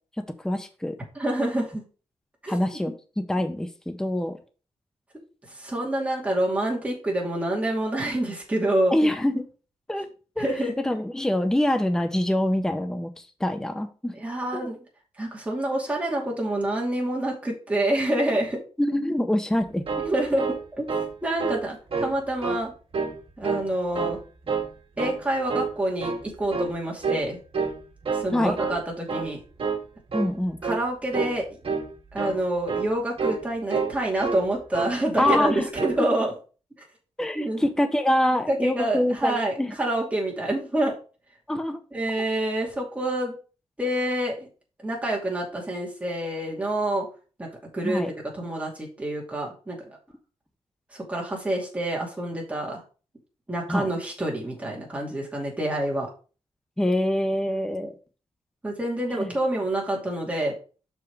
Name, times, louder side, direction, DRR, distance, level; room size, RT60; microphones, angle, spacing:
voice 1, 0.4-1.0 2.5-4.4 8.9-9.5 9.9-10.1 10.4-14.2 14.5-14.6 18.8-19.8 28.3-28.6 30.1-30.6 35.2-35.7 36.0-36.1 37.2-39.7 41.5-41.8 47.8-48.1 53.7-53.9 56.8-58.0 59.1-59.3, left 1 dB, 5° left, 7 dB, 0.7 m, -25 dB
voice 2, 1.2-1.8 2.4-2.6 5.5-9.0 10.4-10.7 14.2-14.8 15.2-18.6 20.0-20.4 20.7-20.9 21.2-22.7 23.4-24.2 25.0-27.4 28.1-29.4 30.6-31.5 32.1-36.3 37.3-37.6 38.5-40.9 41.9-43.4 43.8-44.5 44.8-47.1 47.4-47.5 47.7-48.0 48.3-49.8 50.9-52.8 53.5-56.1 57.8-57.9 58.6-60.5, right 1 dB, 10° right, -2 dB, 2.5 m, -27 dB
sound 1, 19.6-21.1 21.4-21.6 21.9-22.6 22.9-23.7 23.9-24.7 25.0-25.2 25.5-26.3 26.5-26.8 27.0-27.3 27.5-28.3 28.5-28.8 29.1-29.3 29.6-29.8 30.1-30.3 30.6-30.8 31.1-31.4 31.6-31.9 32.1-32.4 32.7-32.9 33.2-33.4 33.7-34.5 34.7-34.9 35.2-35.5 35.7-36.0, right 5 dB, 55° right, 1.9 m, -28 dB
6.1 x 4.9 x 4.7 m, 0.36 s
wide cardioid pair, 135°, 11 cm